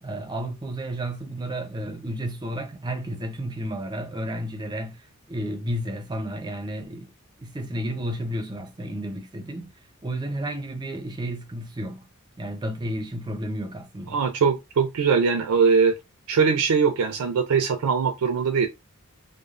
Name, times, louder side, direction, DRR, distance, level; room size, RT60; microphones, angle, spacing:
voice 1, 0.0-7.1 7.4-9.7 10.0-12.0 12.4-14.2, right 1 dB, 20° right, 0.5 m, -32 dB
voice 2, 14.1-15.9 16.3-18.7, right 5 dB, 85° right, 0.4 m, -21 dB
3.1 x 2.0 x 2.4 m
head